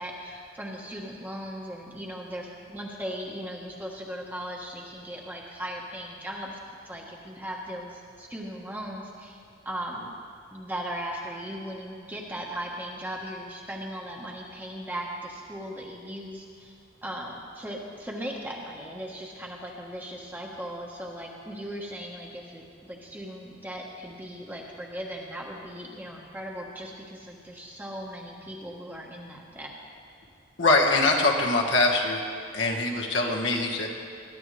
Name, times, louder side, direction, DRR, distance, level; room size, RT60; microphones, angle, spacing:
voice 1, 0.0-6.6 6.8-10.1 10.5-29.7, equal, 10° right, -2 dB, 1.3 m, -38 dB
voice 2, 30.6-32.2 32.5-33.9, left 2 dB, 65° left, -1 dB, 1.5 m, -23 dB
21.0 x 11.0 x 3.3 m, 2.5 s
head